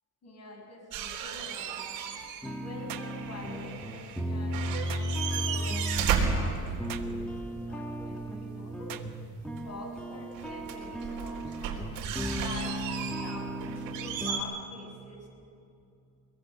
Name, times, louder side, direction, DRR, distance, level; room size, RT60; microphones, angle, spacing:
voice 1, 0.2-2.2 2.6-5.9 6.3-9.0 9.6-11.9 12.4-15.3, left 2 dB, 50° left, 1 dB, 7.3 m, -46 dB
sound 1, 0.9-2.5 2.8-4.2 4.5-7.3 9.6-9.7 10.3-14.4, right 7 dB, 90° right, 3.9 m, -34 dB
sound 2, 2.4-14.4, equal, 5° left, 1.9 m, -35 dB
sound 3, 2.9-3.2 4.9-5.1 6.9-7.2 8.9-9.1, right 11 dB, 70° right, 1.3 m, -41 dB
23.5 x 22.0 x 7.0 m, 2.6 s
cardioid pair, 125°, 34 cm